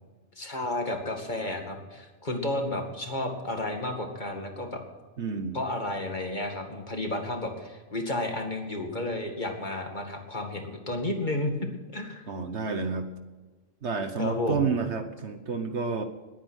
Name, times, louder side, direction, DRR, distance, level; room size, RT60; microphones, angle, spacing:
voice 1, 0.4-4.8 5.5-11.5 11.9-12.3 14.2-14.7, left 1 dB, 35° left, 3 dB, 2.3 m, -32 dB
voice 2, 5.2-5.6 12.3-13.1 13.8-16.0, right 5 dB, 60° right, 9 dB, 1.3 m, -30 dB
20.5 x 9.2 x 6.3 m, 1.3 s
omnidirectional pair, 1.3 m